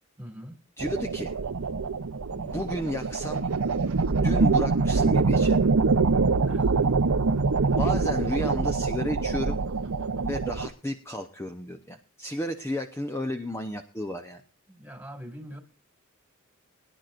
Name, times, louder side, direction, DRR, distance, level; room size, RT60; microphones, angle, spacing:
voice 1, 0.2-0.6 6.4-7.1 14.7-15.6, equal, 10° right, 2.1 m, -43 dB
voice 2, 0.8-1.3 2.3-3.4 3.9-5.7 7.8-9.6 10.2-14.4, left 1 dB, 15° left, 0.8 m, -33 dB
sound 1, 0.8-10.7, right 4 dB, 85° right, 0.7 m, -24 dB
22.5 x 10.5 x 2.5 m
head